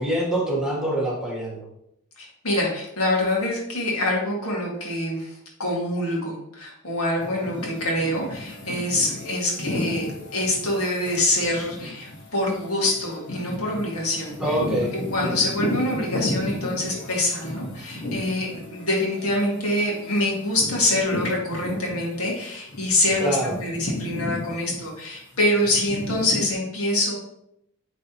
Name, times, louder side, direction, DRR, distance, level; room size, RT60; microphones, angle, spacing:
voice 1, 0.0-1.7 14.4-14.9 23.2-23.6, right 1 dB, 5° right, -4 dB, 1.4 m, -25 dB
voice 2, 2.2-10.1 10.3-14.6 15.1-27.1, left 1 dB, 75° left, -2 dB, 2.1 m, -25 dB
sound 1, 7.2-22.3 22.7-26.5, left 1 dB, 55° left, 1.8 m, -34 dB
9.1 x 4.0 x 3.0 m, 0.78 s
head